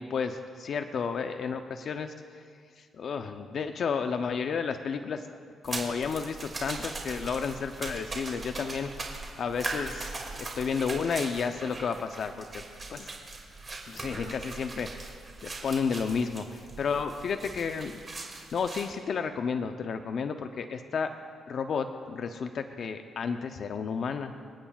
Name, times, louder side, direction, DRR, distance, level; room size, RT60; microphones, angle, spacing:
voice 1, 0.0-2.4 2.8-5.3 5.6-12.6 12.9-13.1 13.9-14.9 15.4-21.1 21.5-24.3, left 5 dB, 55° left, 7 dB, 0.5 m, -32 dB
sound 1, 5.6-18.9, right 3 dB, 30° right, 2.2 m, -40 dB
26.5 x 8.8 x 2.3 m, 2.1 s
cardioid pair, 90°, 0 cm